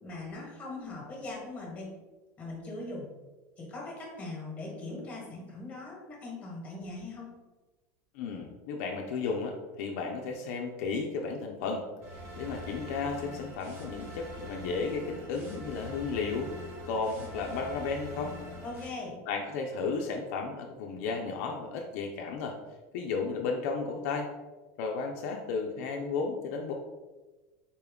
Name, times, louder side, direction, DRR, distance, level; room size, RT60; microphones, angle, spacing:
voice 1, 0.0-1.9 2.4-3.0 3.6-7.3 18.6-19.2, left 2 dB, 15° left, -3 dB, 1.2 m, -40 dB
voice 2, 8.1-11.8 12.1-16.5 16.9-18.3 19.3-22.6 22.9-24.3 24.8-26.7, left 4 dB, 70° left, 1 dB, 0.5 m, -33 dB
sound 1, 12.0-18.9, equal, 25° right, 1.0 m, -43 dB
4.2 x 2.2 x 3.5 m, 1.2 s
supercardioid pair, 150°, 8 cm